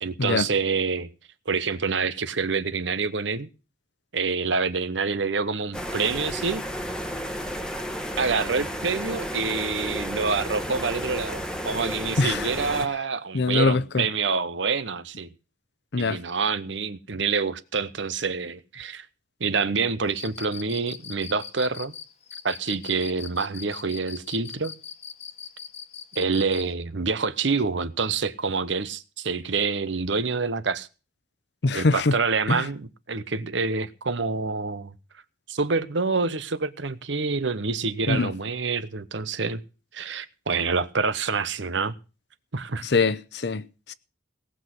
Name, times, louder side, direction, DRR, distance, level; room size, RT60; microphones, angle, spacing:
voice 1, 0.0-1.1 1.5-3.5 4.1-6.6 8.2-15.3 16.0-19.1 19.4-21.9 22.4-24.7 26.1-30.9 31.7-34.9 35.5-39.6 39.9-41.9 42.5-42.8, right 4 dB, 75° right, 0.9 m, -27 dB
sound 1, 5.7-12.9, equal, 5° left, 1.1 m, -32 dB
voice 2, 13.3-14.0 15.9-16.2 31.6-32.1 32.5-32.6 38.1-38.3 42.8-43.6 43.9-44.0, left 3 dB, 60° left, 0.7 m, -23 dB
Cricket, 20.1-26.7, left 7 dB, 35° left, 1.2 m, -40 dB
18.0 x 6.3 x 7.7 m
head